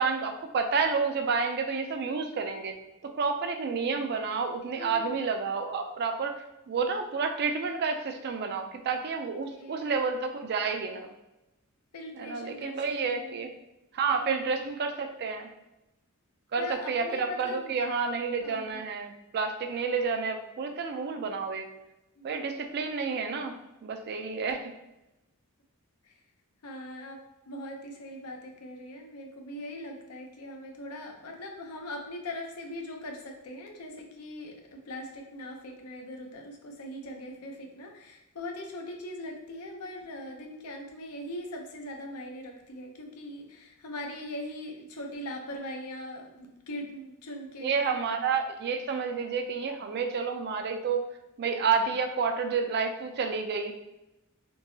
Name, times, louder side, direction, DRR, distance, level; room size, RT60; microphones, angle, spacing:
voice 1, 0.0-2.7 3.0-6.3 6.7-11.1 12.1-13.5 13.9-15.5 16.5-21.6 22.2-23.5 23.8-24.7 47.6-51.1 51.4-53.7, right 5 dB, 45° right, 6 dB, 0.4 m, -30 dB
voice 2, 4.8-5.3 9.5-9.9 11.9-12.8 13.1-13.5 14.2-14.4 16.6-17.8 18.4-18.8 22.2-22.3 26.0-26.1 26.6-48.0 48.9-49.0, left 1 dB, 80° left, 3 dB, 0.6 m, -41 dB
3.7 x 2.8 x 2.7 m, 0.94 s
head